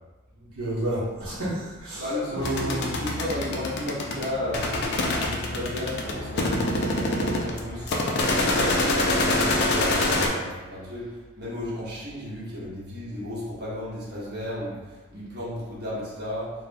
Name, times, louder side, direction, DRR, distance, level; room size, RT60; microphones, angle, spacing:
voice 1, 0.4-2.0 2.3-3.0, right 1 dB, 75° right, -9 dB, 0.8 m, -30 dB
voice 2, 2.0-7.9 8.6-16.5, left 1 dB, 50° right, -9 dB, 1.0 m, -34 dB
sound 1, 2.4-10.3, left 2 dB, 50° left, 0.3 m, -26 dB
3.4 x 2.1 x 2.5 m, 1.2 s
head